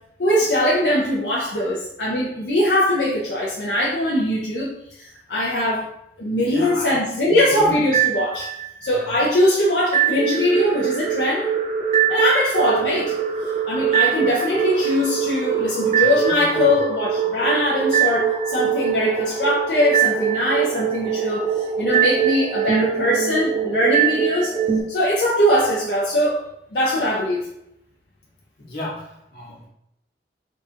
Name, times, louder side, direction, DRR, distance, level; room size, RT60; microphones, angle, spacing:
voice 1, 0.2-4.7 5.0-5.9 6.2-8.5 8.8-11.5 12.1-13.1 13.7-24.5 24.9-26.4 26.7-27.5, left 1 dB, 75° left, -5 dB, 0.7 m, -21 dB
voice 2, 6.3-7.0 7.3-7.9 8.8-9.1 16.0-16.7 28.6-29.7, left 1 dB, 55° left, -5 dB, 1.4 m, -34 dB
Target On Radar, 7.9-8.9 9.9-24.8, right 8 dB, 35° right, 0.8 m, -22 dB
3.9 x 2.4 x 4.3 m, 0.81 s
head